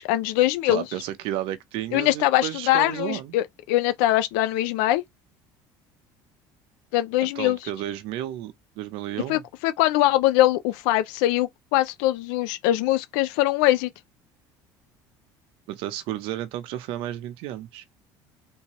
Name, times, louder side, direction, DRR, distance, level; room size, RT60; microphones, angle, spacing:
voice 1, 0.0-0.8 1.9-5.0 6.9-7.6 9.3-13.9, left 15 dB, 85° left, 0.4 m, -22 dB
voice 2, 0.6-3.4 7.2-9.4 15.7-17.8, right 13 dB, 75° right, 0.7 m, -32 dB
3.5 x 2.8 x 3.0 m
cardioid pair, 110°, 9 cm